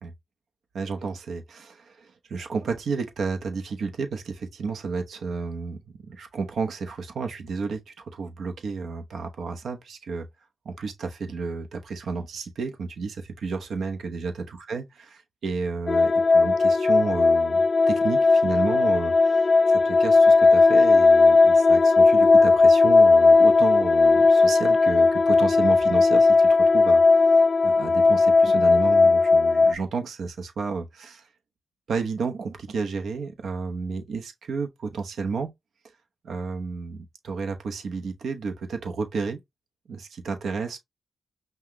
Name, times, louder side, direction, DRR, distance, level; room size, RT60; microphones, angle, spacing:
voice 1, 0.7-10.3 10.6-14.8 15.4-26.3 26.6-27.2 27.6-31.3 31.9-35.5 36.2-39.4 39.9-40.8, right 4 dB, 75° right, 0.9 m, -31 dB
sound 1, 15.9-29.7, left 3 dB, 40° left, 0.3 m, -17 dB
5.6 x 2.3 x 3.0 m
cardioid pair, 65°, 0 cm